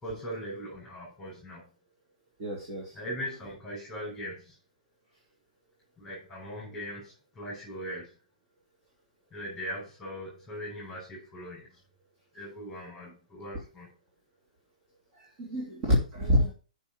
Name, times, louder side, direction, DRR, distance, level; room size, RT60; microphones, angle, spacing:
voice 1, 0.0-1.6 2.9-4.5 6.0-8.1 9.3-11.8 12.3-13.9, equal, ahead, -6 dB, 4.8 m, -40 dB
voice 2, 2.4-3.0 15.1-16.5, equal, 30° right, -3 dB, 3.2 m, -27 dB
6.9 x 5.6 x 7.3 m, 0.37 s
hypercardioid pair, 160°, 4 cm